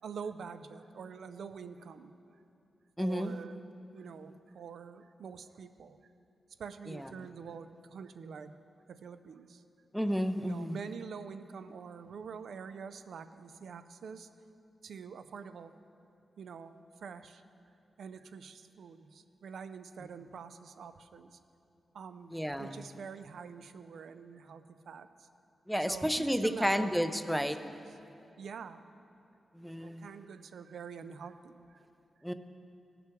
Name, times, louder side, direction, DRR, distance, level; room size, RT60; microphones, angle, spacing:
voice 1, 0.0-2.1 3.0-3.7 3.9-6.1 6.6-8.6 8.9-9.6 10.4-14.3 14.8-15.8 16.4-17.4 18.0-21.4 21.9-25.3 25.9-26.9 27.4-27.8 28.4-28.8 29.8-31.8, right 6 dB, 80° right, 11 dB, 0.4 m, -46 dB
voice 2, 3.0-3.3 6.9-7.1 9.9-10.8 22.3-22.8 25.7-27.6 29.5-30.1 32.2-32.3, equal, ahead, 9 dB, 0.4 m, -31 dB
17.5 x 5.9 x 3.5 m, 2.7 s
wide cardioid pair, 140°, 0 cm